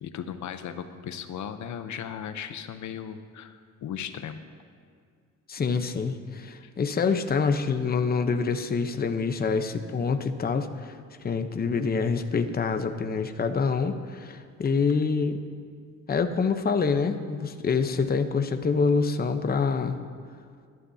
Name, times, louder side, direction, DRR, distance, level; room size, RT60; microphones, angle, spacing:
voice 1, 0.0-4.4 6.6-6.7, left 8 dB, 70° left, 9 dB, 0.8 m, -37 dB
voice 2, 5.5-11.0 11.2-15.4 16.1-20.0, left 5 dB, 30° left, 7 dB, 0.9 m, -26 dB
21.0 x 12.0 x 2.8 m, 2.2 s
cardioid pair, 90°, 30 cm